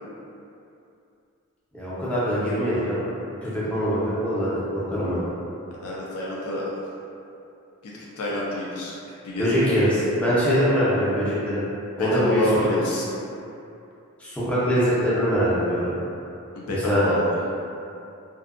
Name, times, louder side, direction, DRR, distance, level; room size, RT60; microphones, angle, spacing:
voice 1, 1.7-3.0 3.4-5.2 9.4-11.6 12.0-12.7 14.2-15.9 16.7-17.1, equal, 5° left, -11 dB, 0.5 m, -23 dB
voice 2, 5.8-6.6 7.8-8.9 9.2-9.5 12.0-13.0 16.5-17.2, left 1 dB, 85° left, -5 dB, 0.4 m, -27 dB
2.6 x 2.2 x 2.4 m, 2.7 s
head